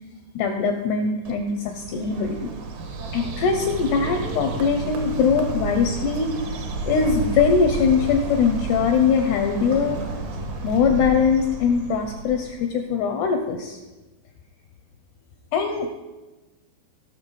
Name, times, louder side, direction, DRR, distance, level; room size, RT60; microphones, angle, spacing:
voice 1, 0.4-2.5 3.1-6.3 6.9-10.0 10.6-13.8 15.5-15.9, left 6 dB, 80° left, 5 dB, 2.4 m, -22 dB
Bird, 1.2-12.7, right 3 dB, 60° right, 2.6 m, -31 dB
17.0 x 6.8 x 5.3 m, 1.1 s
omnidirectional pair, 5.6 m